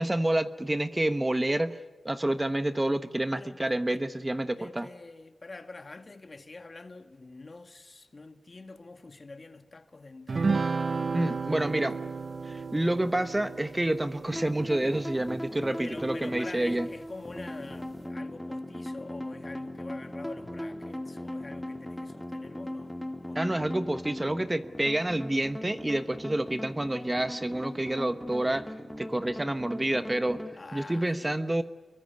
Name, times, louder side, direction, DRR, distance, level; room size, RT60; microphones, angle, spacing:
voice 1, 0.0-1.8 2.0-4.9 11.1-12.0 12.4-16.9 23.3-28.7 29.0-30.4 30.7-31.6, right 1 dB, 20° right, 1.2 m, -28 dB
voice 2, 3.4-4.0 4.6-10.5 15.8-22.9 23.3-23.4 30.6-31.4, left 3 dB, 45° left, 1.9 m, -45 dB
sound 1, 10.3-15.9, right 4 dB, 55° right, 0.9 m, -33 dB
sound 2, 14.3-30.5, left 1 dB, 5° left, 2.0 m, -39 dB
26.0 x 22.5 x 9.4 m
cardioid pair, 60°, 0 cm